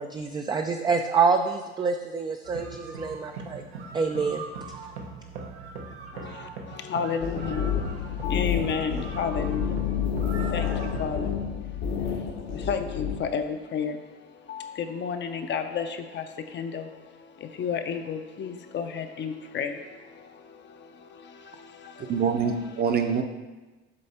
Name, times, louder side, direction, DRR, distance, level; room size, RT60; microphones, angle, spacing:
voice 1, 0.0-3.6 3.9-4.4, right 5 dB, 15° right, 4 dB, 0.3 m, -26 dB
sound 1, 2.4-11.0, right 4 dB, 85° right, 1.0 m, -40 dB
voice 2, 6.1-22.2 22.4-22.5, left 6 dB, 35° left, 7 dB, 0.6 m, -33 dB
sound 2, 7.2-13.2, left 8 dB, 75° left, 1.4 m, -29 dB
voice 3, 22.0-23.2, right 6 dB, 30° right, 6 dB, 0.7 m, -25 dB
7.7 x 3.3 x 4.3 m, 1.2 s
hypercardioid pair, 80°, 31 cm